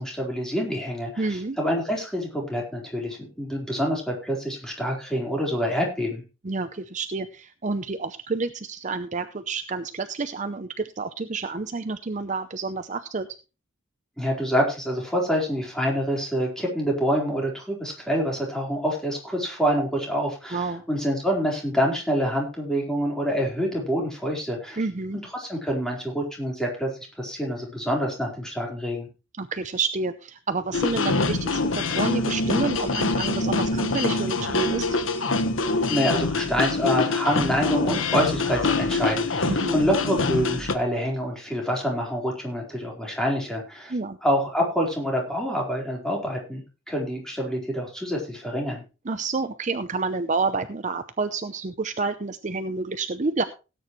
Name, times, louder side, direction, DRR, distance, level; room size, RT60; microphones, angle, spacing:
voice 1, 0.0-6.2 14.2-24.8 25.3-26.9 27.2-29.1 35.9-43.9 44.2-46.6 46.9-48.8, equal, 5° left, -1 dB, 4.2 m, -26 dB
voice 2, 1.2-1.6 6.4-13.3 20.5-20.8 24.8-25.2 29.4-34.9 39.5-39.8 43.9-44.2 49.0-53.4, right 3 dB, 40° right, 10 dB, 0.6 m, -29 dB
sound 1, 30.7-40.7, left 3 dB, 75° left, 1.3 m, -25 dB
17.5 x 9.1 x 3.2 m, 0.31 s
head